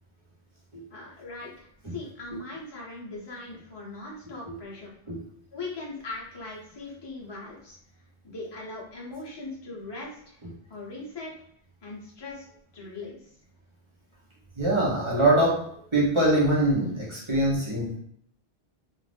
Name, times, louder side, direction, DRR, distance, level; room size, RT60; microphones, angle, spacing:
voice 1, 0.9-4.9 5.5-7.8 8.2-10.4 10.7-11.3 11.8-12.5 12.7-13.3, left 3 dB, 30° left, -4 dB, 0.7 m, -40 dB
voice 2, 14.6-15.6 15.9-18.0, right 1 dB, 30° right, -5 dB, 0.8 m, -23 dB
2.5 x 2.5 x 3.3 m, 0.68 s
omnidirectional pair, 1.1 m